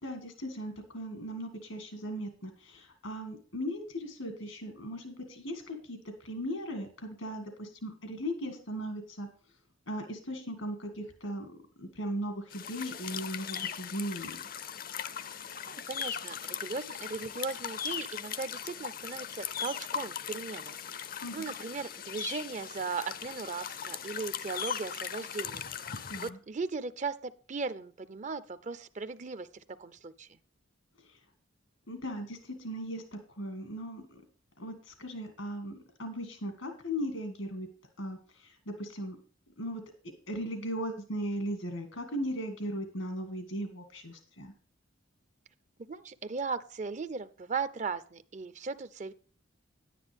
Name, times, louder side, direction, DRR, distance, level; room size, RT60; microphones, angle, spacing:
voice 1, 0.0-9.3 9.9-14.4 21.2-21.5 26.1-26.4 31.1-31.2 31.9-34.2 34.6-37.7 38.0-39.2 39.6-39.8 40.3-44.5, equal, 85° left, 5 dB, 2.0 m, -38 dB
sound 1, 12.5-26.3, left 8 dB, 45° left, 0.6 m, -39 dB
voice 2, 15.7-20.8 21.3-25.6 26.2-30.3 45.9-49.1, right 4 dB, 35° right, 14 dB, 0.5 m, -37 dB
10.5 x 10.0 x 3.5 m, 0.41 s
head